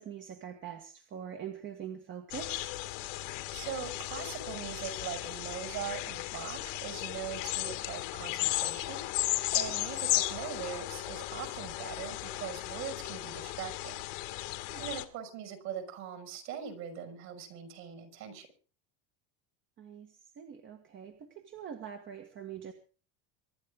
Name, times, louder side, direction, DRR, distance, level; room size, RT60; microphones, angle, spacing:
voice 1, 0.0-2.8 9.7-9.8 14.7-14.9 19.8-22.7, right 8 dB, 30° right, 6 dB, 1.7 m, -44 dB
sound 1, 2.3-15.0, left 19 dB, 80° left, 2.0 m, -35 dB
voice 2, 3.5-9.0 9.5-14.0 14.8-18.5, right 8 dB, 50° right, 8 dB, 6.0 m, -41 dB
24.5 x 12.0 x 3.8 m, 0.37 s
cardioid pair, 165°, 36 cm